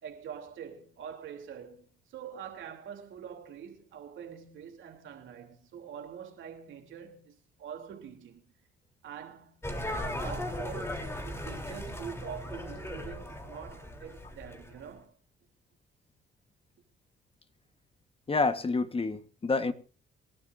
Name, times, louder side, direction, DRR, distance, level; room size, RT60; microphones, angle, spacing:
voice 1, 0.0-8.4 9.0-9.7 10.2-15.2, right 8 dB, 75° right, 3.3 m, -45 dB
sound 1, 9.6-14.8, left 1 dB, 15° left, 3.4 m, -37 dB
voice 2, 18.3-19.7, left 3 dB, 30° left, 1.4 m, -28 dB
27.5 x 12.5 x 2.6 m
cardioid pair, 90°, 20 cm